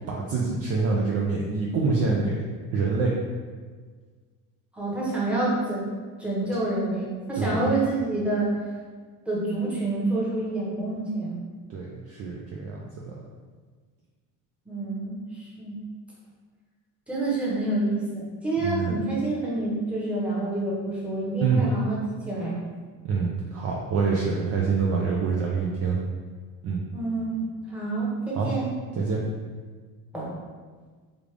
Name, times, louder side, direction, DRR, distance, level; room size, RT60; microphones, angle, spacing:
voice 1, 0.1-2.4 2.7-3.1 7.4-7.7 11.7-13.1 18.6-19.0 21.4-21.6 23.0-26.0 26.6-26.8 28.3-28.5 28.9-29.2, right 4 dB, 35° right, -3 dB, 0.5 m, -26 dB
voice 2, 4.7-5.9 6.2-8.6 9.2-11.4 14.7-15.8 17.1-22.0 22.3-22.6 26.9-28.7 30.1-30.3, right 2 dB, 5° right, -6 dB, 1.0 m, -28 dB
3.3 x 2.5 x 3.3 m, 1.5 s
supercardioid pair, 100°, 41 cm